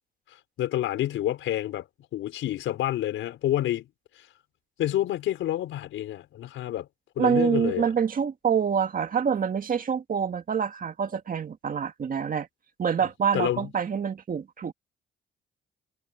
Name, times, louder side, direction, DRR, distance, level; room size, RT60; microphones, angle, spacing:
voice 1, 0.6-1.8 2.1-3.9 4.8-6.9 7.1-7.9 13.3-13.7, left 13 dB, 85° left, 5.1 m, -28 dB
voice 2, 7.2-12.5 12.8-14.7, right 7 dB, 45° right, 1.9 m, -26 dB
cardioid pair, 90°, 20 cm